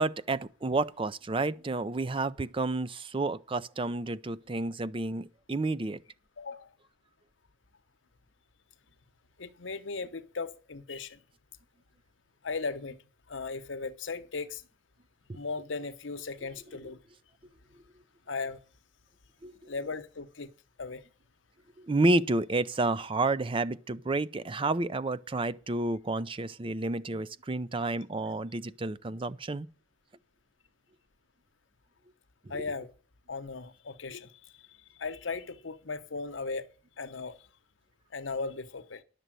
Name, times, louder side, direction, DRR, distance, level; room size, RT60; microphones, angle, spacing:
voice 1, 0.0-6.0 15.3-15.4 19.4-19.7 21.8-29.7 32.5-32.7, right 2 dB, 30° right, 0.5 m, -30 dB
voice 2, 6.4-6.7 9.4-11.2 12.4-13.0 13.3-14.6 15.3-17.0 18.3-18.6 19.7-20.5 20.8-21.0 32.5-32.9 33.3-34.5 35.0-36.7 37.0-37.4 38.1-39.0, left 4 dB, 85° left, 0.9 m, -37 dB
11.0 x 6.8 x 7.6 m
head